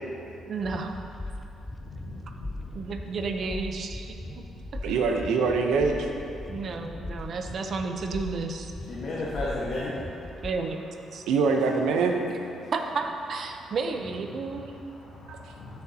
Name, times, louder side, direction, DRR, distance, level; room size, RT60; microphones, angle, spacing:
voice 1, 0.5-0.9 2.7-4.4 4.7-4.8 6.5-8.7 10.4-10.9 11.1-11.2 12.7-14.8, right 4 dB, 55° right, 4 dB, 0.8 m, -32 dB
sound 1, 0.6-10.5, left 2 dB, 15° left, 0.3 m, -39 dB
voice 2, 1.7-3.2 4.4-4.5 6.4-7.5 8.8-11.3 11.6-11.7 12.6-12.7 13.5-13.8 14.3-15.8, left 2 dB, 55° left, -7 dB, 1.5 m, -38 dB
voice 3, 4.8-6.1 11.3-12.2 15.3-15.5, right 4 dB, 85° right, 3 dB, 0.8 m, -24 dB
13.0 x 6.4 x 2.9 m, 2.7 s
cardioid pair, 90°, 0 cm